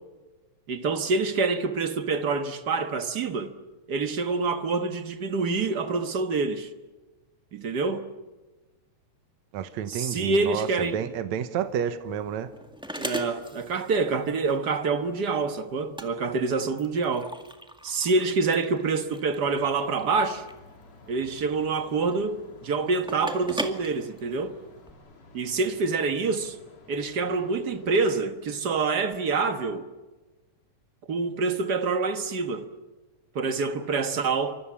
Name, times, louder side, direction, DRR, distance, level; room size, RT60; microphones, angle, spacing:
voice 1, 0.7-3.5 3.9-6.7 7.5-8.1 9.9-11.0 13.0-17.3 17.8-20.4 21.1-24.6 25.3-26.6 26.9-29.9 31.1-32.7 33.3-34.6, right 4 dB, 45° right, 1.4 m, -26 dB
voice 2, 9.5-12.5, right 9 dB, 75° right, 2.4 m, -30 dB
sound 1, 11.6-24.9, equal, ahead, 1.2 m, -40 dB
sound 2, 19.4-28.2, left 3 dB, 60° left, 4.6 m, -53 dB
28.0 x 25.0 x 7.3 m
omnidirectional pair, 3.3 m